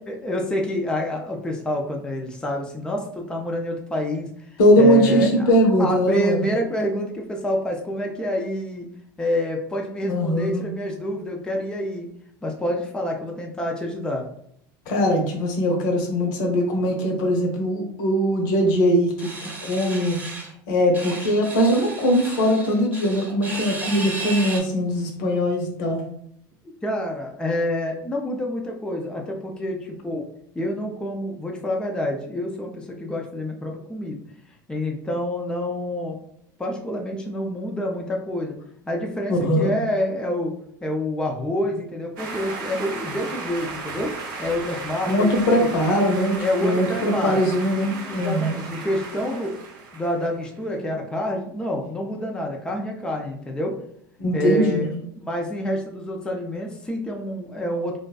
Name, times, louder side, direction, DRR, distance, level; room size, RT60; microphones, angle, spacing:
voice 1, 0.1-5.5 5.8-8.9 9.2-12.1 12.4-14.2 26.8-30.2 30.5-34.2 34.7-36.2 36.6-38.6 38.9-40.5 40.8-44.1 44.4-45.7 46.4-47.4 48.1-49.5 49.9-53.8 54.3-54.9 55.3-58.0, left 1 dB, 10° left, 0 dB, 0.5 m, -27 dB
voice 2, 4.6-6.4 10.0-10.7 14.9-20.2 20.7-26.0 39.3-39.7 45.0-48.6 54.2-54.9, equal, 70° left, 2 dB, 0.7 m, -21 dB
sound 1, 19.2-20.5 20.9-24.6, right 2 dB, 15° right, 0.9 m, -34 dB
sound 2, 42.2-50.5, right 4 dB, 75° right, 0.7 m, -35 dB
2.5 x 2.2 x 2.2 m, 0.68 s
hypercardioid pair, 85°, 11 cm